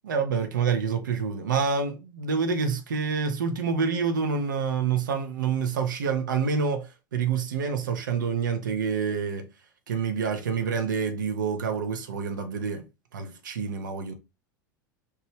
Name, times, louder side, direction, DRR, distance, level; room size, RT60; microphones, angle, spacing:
voice 1, 0.0-9.5 9.9-12.8 13.1-14.1, right 6 dB, 70° right, 0.6 m, -27 dB
3.0 x 2.2 x 3.1 m
figure-of-eight pair, 85°, 11 cm